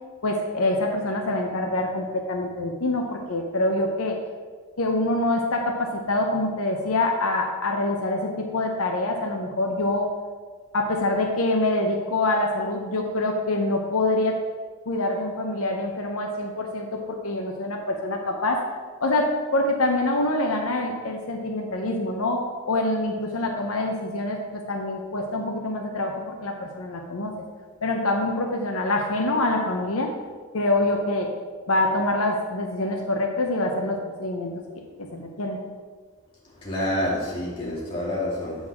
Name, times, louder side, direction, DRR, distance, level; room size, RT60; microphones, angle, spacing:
voice 1, 0.2-4.2 4.8-10.1 10.7-14.4 14.9-18.6 19.0-27.3 27.8-30.1 30.5-31.3 31.7-34.5 35.1-35.6, left 2 dB, 80° left, 2 dB, 0.8 m, -25 dB
voice 2, 36.4-38.7, left 1 dB, 25° left, -8 dB, 2.4 m, -28 dB
7.9 x 4.0 x 6.0 m, 1.5 s
head